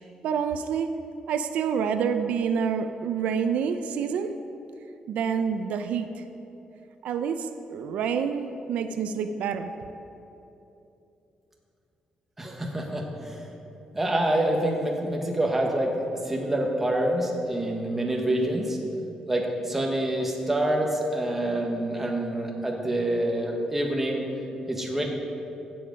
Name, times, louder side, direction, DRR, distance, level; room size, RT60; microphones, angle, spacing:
voice 1, 0.2-0.9 1.3-4.3 5.1-6.2 7.0-9.7, right 6 dB, 85° right, 8 dB, 0.6 m, -27 dB
voice 2, 12.4-13.4 13.9-18.8 19.3-24.3 24.7-25.0, right 1 dB, 10° right, 0 dB, 1.5 m, -26 dB
15.5 x 7.8 x 5.2 m, 2.9 s
cardioid pair, 155°, 2 cm